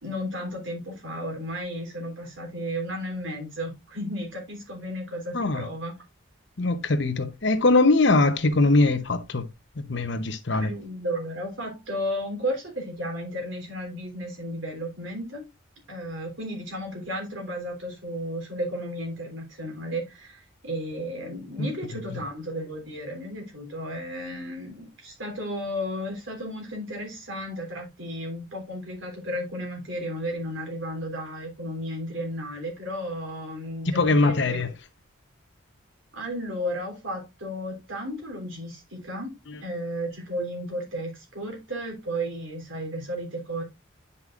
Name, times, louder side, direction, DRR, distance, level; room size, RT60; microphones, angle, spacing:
voice 1, 0.0-5.9 10.5-15.5 15.9-34.6 36.1-43.6, equal, 70° right, 3.4 m, -33 dB
voice 2, 6.6-9.5 9.8-10.7 21.6-21.7 33.9-34.7, left 2 dB, 60° left, 0.9 m, -22 dB
9.7 x 5.5 x 2.5 m
head